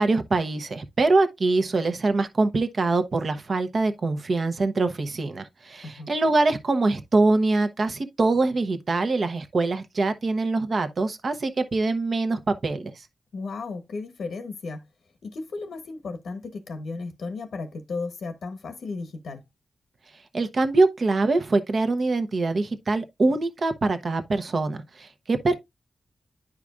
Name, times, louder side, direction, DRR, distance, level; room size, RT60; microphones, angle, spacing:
voice 1, 0.0-12.9 20.3-25.6, right 3 dB, 55° right, 0.9 m, -24 dB
voice 2, 13.3-14.8 15.2-19.4, left 3 dB, 85° left, 1.0 m, -34 dB
9.7 x 4.9 x 2.4 m
wide cardioid pair, 85°, 0 cm